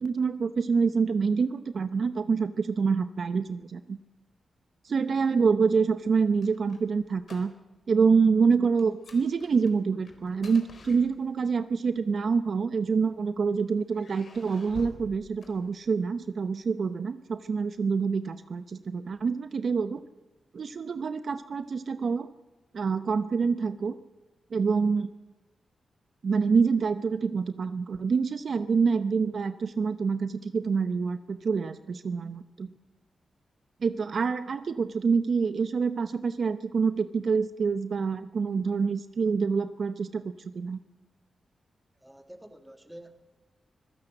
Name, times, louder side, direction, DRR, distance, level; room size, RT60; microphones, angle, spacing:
voice 1, 0.0-4.0 4.8-7.5 7.9-20.0 20.5-22.3 22.7-24.0 24.5-25.1 26.2-32.7 33.8-40.8, right 5 dB, 55° right, 12 dB, 0.7 m, -26 dB
sound 1, 6.0-8.4 8.8-11.6 12.4-13.3 13.9-16.2, left 4 dB, 55° left, 4.2 m, -50 dB
voice 2, 42.0-43.1, right 1 dB, 5° right, 7 dB, 2.3 m, -48 dB
25.0 x 16.0 x 7.9 m, 1.1 s
wide cardioid pair, 105°, 0 cm